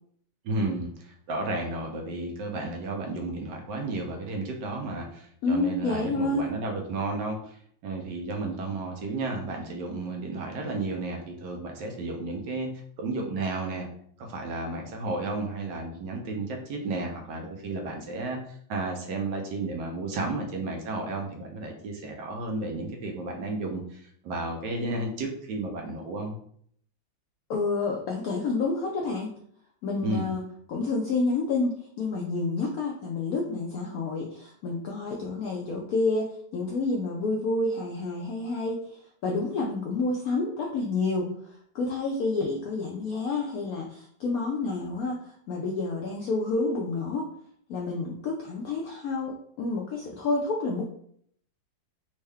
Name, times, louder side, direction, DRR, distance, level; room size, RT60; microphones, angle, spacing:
voice 1, 0.4-12.7 13.0-13.9 14.2-26.4 30.0-30.3, right 2 dB, 75° right, 2 dB, 1.2 m, -33 dB
voice 2, 5.4-6.5 27.5-29.3 29.8-47.3 47.7-50.8, left 3 dB, 80° left, 0 dB, 0.8 m, -29 dB
3.6 x 2.2 x 3.4 m, 0.64 s
omnidirectional pair, 2.0 m